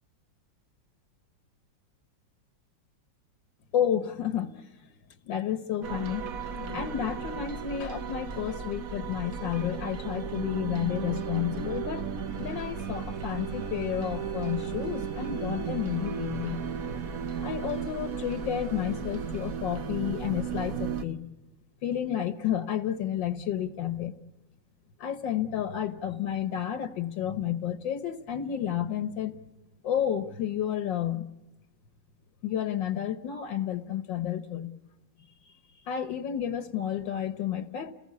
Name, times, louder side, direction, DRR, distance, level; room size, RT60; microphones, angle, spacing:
voice 1, 3.7-4.7 5.3-6.2 6.5-12.1 12.4-16.6 17.4-21.3 21.8-24.2 25.0-29.3 29.8-31.3 32.4-34.7 35.8-37.9, left 10 dB, 80° left, 9 dB, 1.8 m, -31 dB
sound 1, 5.8-21.0, right 6 dB, 55° right, 1.3 m, -35 dB
sound 2, 12.2-19.6, left 2 dB, 35° right, 7.0 m, -56 dB
30.0 x 20.0 x 8.4 m, 1.1 s
omnidirectional pair, 2.0 m